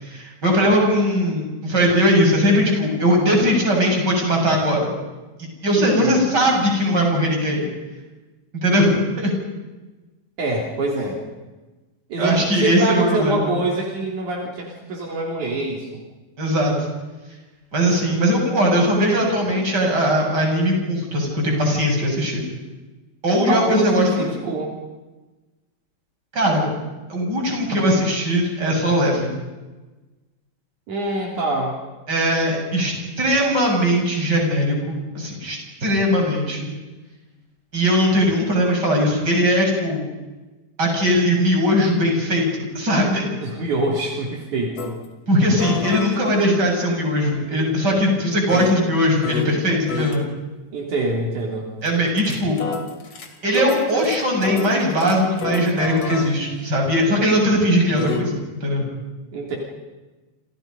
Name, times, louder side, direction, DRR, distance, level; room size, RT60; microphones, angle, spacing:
voice 1, 0.0-4.9 5.4-7.7 8.6-9.3 12.2-13.5 16.4-16.9 17.7-22.4 23.2-24.3 26.3-26.6 27.1-29.3 32.1-36.7 37.7-40.0 40.8-43.2 45.3-50.3 51.8-52.6 53.4-58.9, equal, 30° right, 0 dB, 7.5 m, -20 dB
voice 2, 5.8-6.3 10.4-11.2 12.1-15.9 23.5-24.7 30.9-31.7 43.4-45.0 50.7-51.7 59.3-59.6, right 2 dB, 70° right, -1 dB, 4.6 m, -25 dB
sound 1, 44.8-44.9 45.6-49.6 49.9-50.2 51.9-58.2, left 5 dB, 50° left, 3.5 m, -31 dB
30.0 x 28.0 x 5.4 m, 1.2 s
omnidirectional pair, 3.6 m